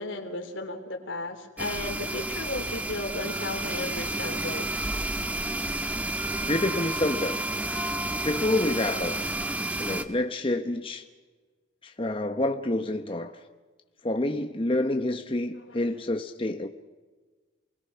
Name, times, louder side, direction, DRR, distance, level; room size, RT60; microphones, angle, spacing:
voice 1, 0.0-4.6 15.5-15.8, left 2 dB, 85° left, 4 dB, 3.5 m, -35 dB
sound 1, 1.6-10.0, right 2 dB, 10° right, 1.3 m, -31 dB
voice 2, 6.4-7.5 8.2-9.3 9.8-11.1 11.8-13.4 14.0-16.7, left 1 dB, 30° left, 5 dB, 1.0 m, -28 dB
28.5 x 20.5 x 5.8 m, 1.3 s
head